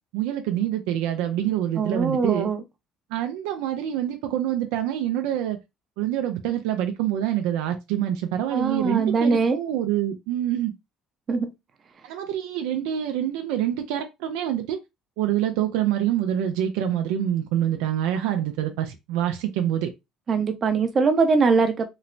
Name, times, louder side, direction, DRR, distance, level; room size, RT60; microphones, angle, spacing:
voice 1, 0.1-2.5 3.1-5.6 6.0-10.7 12.0-14.8 15.2-19.9, right 11 dB, 85° right, 0.4 m, -26 dB
voice 2, 1.8-2.6 8.5-9.6 11.3-11.5 20.3-21.9, right 4 dB, 40° right, 0.6 m, -21 dB
3.0 x 2.0 x 2.5 m
supercardioid pair, 90°, 0 cm